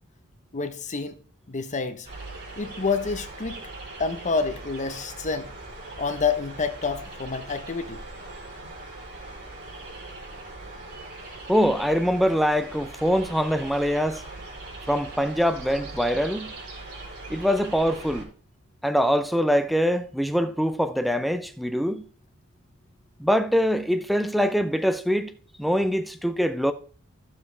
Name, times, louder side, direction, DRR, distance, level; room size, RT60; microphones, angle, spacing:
voice 1, 0.5-1.2 1.5-2.1 2.6-3.6 4.0-5.5 6.0-8.0, left 4 dB, 35° left, 0.8 m, -28 dB
sound 1, 2.1-18.2, right 2 dB, 50° right, 4.2 m, -40 dB
voice 2, 11.5-14.2 14.9-16.5 17.3-18.3 18.8-22.0 23.2-25.3 25.6-26.7, equal, ahead, 0.6 m, -23 dB
14.0 x 7.3 x 3.3 m
head